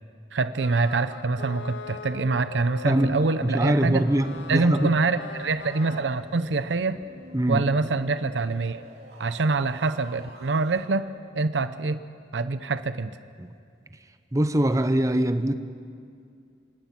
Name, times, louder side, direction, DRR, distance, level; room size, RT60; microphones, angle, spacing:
voice 1, 0.3-4.0 4.5-7.0 7.5-8.8 9.2-11.1 11.3-12.0 12.3-13.1, right 3 dB, 90° right, 12 dB, 0.7 m, -25 dB
sound 1, 0.6-6.0, left 5 dB, 80° left, 0.7 m, -40 dB
voice 2, 2.8-4.9 7.3-7.6 13.4-13.5 14.3-15.5, right 1 dB, 20° right, 10 dB, 0.8 m, -23 dB
sound 2, 4.1-10.8, right 1 dB, 65° right, 3.0 m, -49 dB
26.5 x 17.5 x 5.9 m, 2.3 s
head